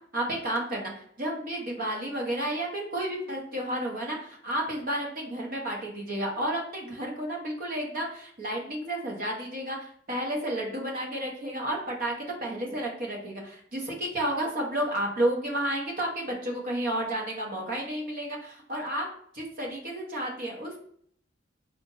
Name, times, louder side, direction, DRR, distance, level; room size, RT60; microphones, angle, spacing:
voice 1, 0.1-19.0 19.3-20.8, right 1 dB, 50° right, 0 dB, 1.2 m, -31 dB
4.4 x 2.5 x 3.9 m, 0.63 s
head